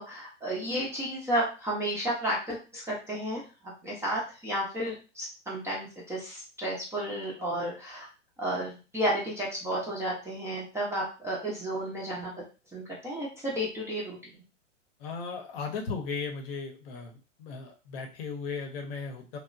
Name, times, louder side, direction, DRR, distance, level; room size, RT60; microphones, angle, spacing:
voice 1, 0.0-3.4 3.8-8.1 8.4-12.3 12.7-14.3, right 1 dB, 5° right, -5 dB, 0.5 m, -32 dB
voice 2, 15.0-19.4, left 5 dB, 50° left, 3 dB, 0.8 m, -36 dB
2.9 x 2.1 x 2.5 m, 0.33 s
hypercardioid pair, 110°, 38 cm